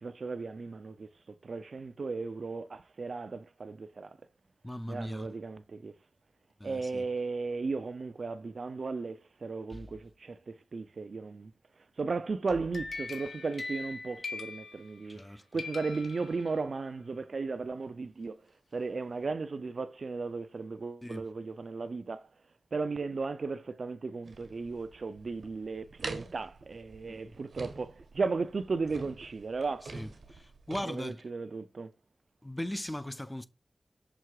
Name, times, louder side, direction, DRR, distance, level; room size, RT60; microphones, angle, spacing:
voice 1, 0.0-4.2 4.9-5.9 6.6-11.5 12.0-18.4 18.7-22.3 22.7-29.9 30.8-31.9, right 4 dB, 70° right, 0.6 m, -36 dB
voice 2, 4.6-5.3 6.6-7.0 9.7-9.8 15.1-15.4 21.0-21.3 27.1-27.3 29.9-31.2 32.4-33.5, left 1 dB, 15° left, 0.6 m, -39 dB
sound 1, 12.5-15.3 15.6-16.9, left 4 dB, 75° left, 1.2 m, -42 dB
sound 2, 24.2-30.8, right 3 dB, 90° right, 1.4 m, -45 dB
6.2 x 3.3 x 4.7 m
wide cardioid pair, 70°, 0 cm